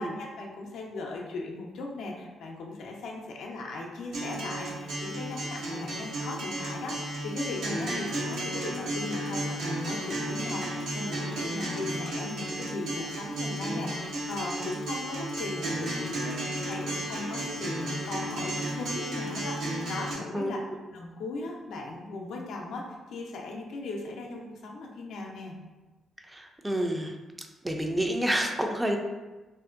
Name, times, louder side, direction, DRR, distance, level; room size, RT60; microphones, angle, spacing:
voice 1, 0.0-20.6 20.9-25.6, left 2 dB, 75° left, 0 dB, 0.4 m, -38 dB
Acoustic guitar, 4.1-20.1, right 1 dB, 75° right, 0.6 m, -33 dB
voice 2, 26.3-27.2 27.6-29.0, right 1 dB, 15° right, 3 dB, 0.3 m, -28 dB
2.5 x 2.1 x 2.4 m, 1.2 s
supercardioid pair, 60°, 0 cm